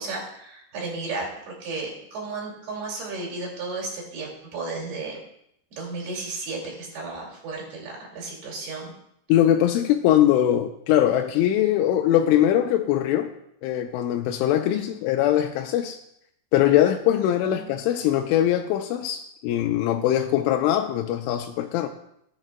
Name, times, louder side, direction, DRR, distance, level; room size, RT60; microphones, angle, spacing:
voice 1, 0.0-5.2 5.7-8.9 14.7-15.0 17.4-17.7, right 3 dB, 55° right, -3 dB, 4.0 m, -34 dB
voice 2, 9.3-13.3 13.6-16.0 16.5-21.9, left 11 dB, 85° left, 4 dB, 2.8 m, -21 dB
18.5 x 7.3 x 2.2 m, 0.77 s
omnidirectional pair, 5.7 m